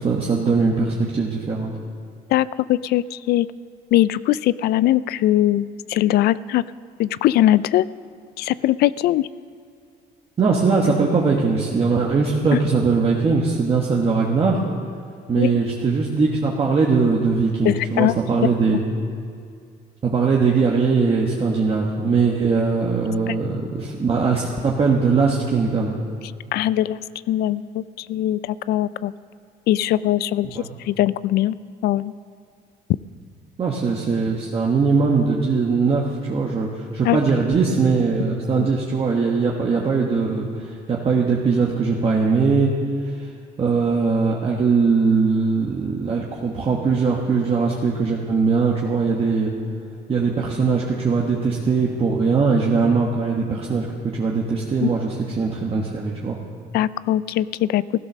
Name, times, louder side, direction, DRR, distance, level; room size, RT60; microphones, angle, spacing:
voice 1, 0.0-1.7 10.4-14.6 15.3-18.8 20.0-26.0 30.5-30.7 33.6-42.7 43.2-43.3 43.6-49.5 50.1-53.9 54.1-56.4, right 4 dB, 35° right, -2 dB, 1.5 m, -20 dB
voice 2, 2.3-3.5 3.9-6.6 7.0-7.9 8.4-9.3 12.5-12.6 15.3-15.5 17.6-18.1 18.4-18.5 23.3-23.4 26.5-27.0 27.3-29.1 29.7-31.6 31.8-32.1 37.0-37.2 38.6-38.7 54.8-54.9 56.7-57.8, left 13 dB, 70° left, 18 dB, 0.4 m, -21 dB
15.5 x 11.5 x 6.3 m, 2.3 s
cardioid pair, 110°, 17 cm